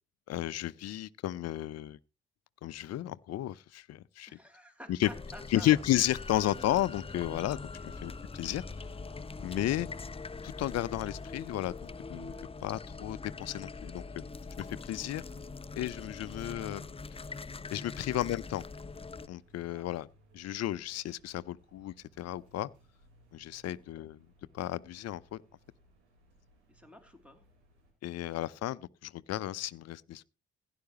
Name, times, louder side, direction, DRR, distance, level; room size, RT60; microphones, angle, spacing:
voice 1, 0.3-2.0 2.6-4.3 4.9-5.1 5.5-8.6 9.4-9.9 10.4-11.8 12.1-12.3 12.6-14.0 14.6-15.2 15.8-16.8 17.7-18.6 19.3-20.1 20.3-22.7 23.3-24.3 24.5-25.4 28.0-30.2, left 13 dB, 50° left, 0.7 m, -33 dB
voice 2, 4.3-5.8 7.8-7.9 15.5-15.6 17.7-18.0 19.7-19.9 23.7-23.8 26.7-27.4, equal, 5° right, 3.0 m, -52 dB
sound 1, 5.0-19.3, left 4 dB, 15° left, 0.7 m, -43 dB
sound 2, 5.0-7.8 8.7-11.3, right 5 dB, 60° right, 3.6 m, -66 dB
sound 3, 13.1-27.9, right 1 dB, 80° right, 4.3 m, -65 dB
16.0 x 11.0 x 3.0 m
figure-of-eight pair, 45°, 33 cm